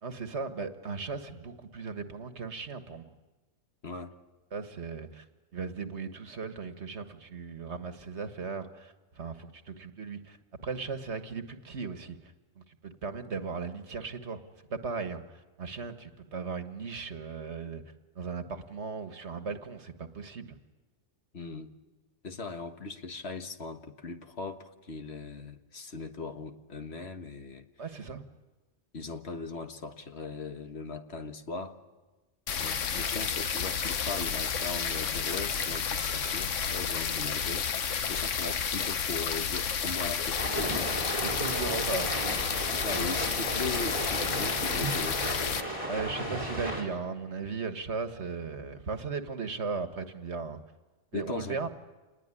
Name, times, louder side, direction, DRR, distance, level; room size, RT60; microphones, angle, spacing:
voice 1, 0.0-3.1 4.5-5.3 5.5-10.4 10.6-12.2 12.6-14.4 14.7-17.8 18.2-20.6 27.8-28.2 41.2-42.1 45.9-50.6 51.1-51.7, right 5 dB, 65° right, 8 dB, 1.8 m, -37 dB
voice 2, 3.8-4.1 21.3-21.7 22.2-27.6 28.9-31.8 32.6-40.9 42.7-45.4 51.1-51.7, left 4 dB, 60° left, 6 dB, 1.7 m, -39 dB
sound 1, 32.5-45.6, left 7 dB, 85° left, 1.4 m, -31 dB
sound 2, 40.3-46.8, right 1 dB, 25° left, 6.2 m, -34 dB
28.0 x 20.0 x 9.8 m, 1.2 s
omnidirectional pair, 1.3 m